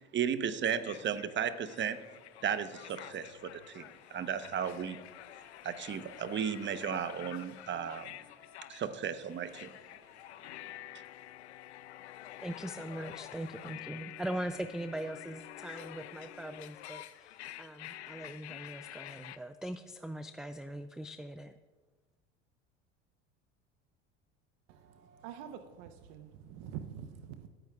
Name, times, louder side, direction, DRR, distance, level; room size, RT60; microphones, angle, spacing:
voice 1, 0.0-2.0 2.4-3.8 4.1-5.0 5.6-8.1 8.7-9.7, right 8 dB, 35° right, 11 dB, 0.9 m, -34 dB
sound 1, 0.7-19.4, left 13 dB, 90° left, 0.5 m, -49 dB
voice 2, 12.4-21.5, right 1 dB, ahead, 10 dB, 0.4 m, -41 dB
voice 3, 24.7-27.5, right 9 dB, 65° right, 8 dB, 0.9 m, -46 dB
24.0 x 8.9 x 2.4 m, 1.3 s
hypercardioid pair, 75°, 32 cm